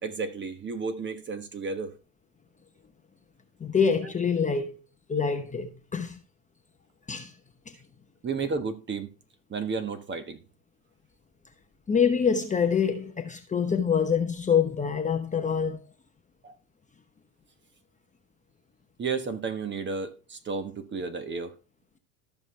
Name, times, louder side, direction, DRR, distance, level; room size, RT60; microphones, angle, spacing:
voice 1, 0.0-2.0 8.2-9.1 9.5-10.4 16.4-16.5 19.0-21.5, right 4 dB, 25° right, 1.3 m, -32 dB
voice 2, 3.6-4.8 5.1-6.2 7.1-7.3 7.7-7.8 11.9-15.8, left 6 dB, 15° left, 1.0 m, -25 dB
14.0 x 6.1 x 3.2 m
hypercardioid pair, 95°, 48 cm